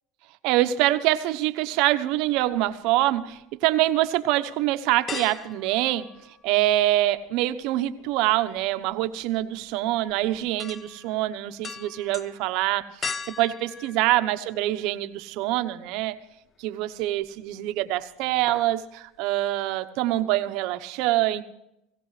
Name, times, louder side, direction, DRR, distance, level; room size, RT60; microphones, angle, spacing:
voice 1, 0.4-6.1 6.4-13.1 13.4-16.2 16.6-21.4, right 15 dB, 65° right, 10 dB, 1.0 m, -25 dB
sound 1, 2.4-3.4 3.9-4.0 5.1-6.8 7.1-15.0 15.4-15.5 16.9-17.5 17.8-18.0 18.3-18.8 19.1-19.2, left 5 dB, 25° left, 0.6 m, -40 dB
18.5 x 17.0 x 3.3 m, 0.84 s
supercardioid pair, 100°, 0 cm